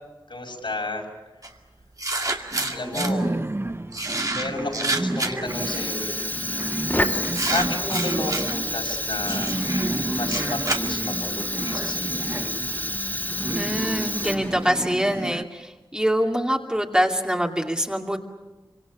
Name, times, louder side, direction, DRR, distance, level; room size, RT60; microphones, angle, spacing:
voice 1, 0.3-1.1 2.7-3.3 4.3-6.2 7.5-9.7 10.1-12.3, left 2 dB, 75° left, 0 dB, 6.6 m, -31 dB
sound 1, 1.4-1.5 2.0-3.1 3.9-5.5 6.4-6.7 7.3-8.5 9.2-11.5, right 2 dB, 45° right, 2.3 m, -29 dB
sound 2, 2.5-15.4, right 2 dB, 30° right, 0.9 m, -31 dB
Fire, 5.4-14.7, left 1 dB, 20° left, 3.1 m, -29 dB
voice 2, 13.5-18.2, equal, 10° right, 1 dB, 2.4 m, -24 dB
26.0 x 25.0 x 7.3 m, 1.2 s
wide cardioid pair, 60°, 9 cm